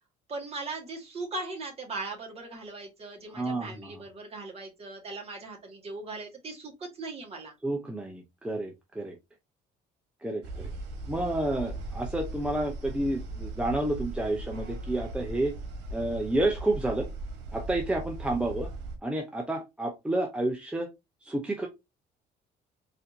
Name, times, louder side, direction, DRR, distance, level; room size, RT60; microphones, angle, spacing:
voice 1, 0.3-7.5, right 3 dB, 35° right, 1.7 m, -39 dB
voice 2, 3.3-4.0 7.6-9.2 10.2-10.7 11.1-15.5 15.9-17.1 17.5-18.7 19.0-20.9 21.2-21.7, right 1 dB, 5° right, 0.6 m, -30 dB
sound 1, 10.4-19.0, right 2 dB, 85° right, 1.1 m, -38 dB
4.2 x 2.8 x 2.6 m
cardioid pair, 110°, 17 cm